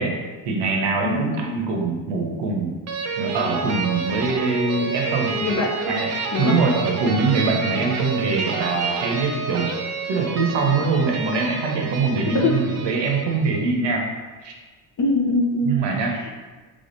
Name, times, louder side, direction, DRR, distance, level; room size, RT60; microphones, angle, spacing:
voice 1, 0.0-2.7 3.2-5.3 5.9-6.1 6.4-9.7 10.1-14.1 14.4-14.5 15.6-16.1, right 4 dB, 60° right, 1 dB, 0.8 m, -23 dB
sound 1, 2.9-13.6, right 4 dB, 35° right, 0.5 m, -29 dB
voice 2, 5.4-5.7 6.3-6.6 12.3-12.6 15.0-15.8 16.1-16.3, left 2 dB, 35° left, 0 dB, 0.7 m, -22 dB
3.5 x 3.4 x 2.6 m, 1.3 s
supercardioid pair, 65°, 49 cm